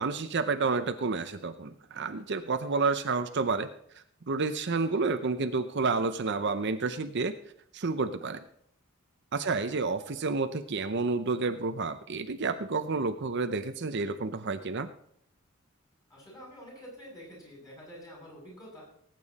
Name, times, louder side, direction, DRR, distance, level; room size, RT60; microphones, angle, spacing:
voice 1, 0.0-3.7 3.9-7.3 7.7-8.4 9.3-14.9, right 4 dB, 55° right, 9 dB, 0.7 m, -30 dB
voice 2, 4.7-5.1 9.3-9.8 16.1-18.8, equal, 20° left, -4 dB, 7.4 m, -48 dB
19.0 x 9.2 x 4.2 m, 0.66 s
head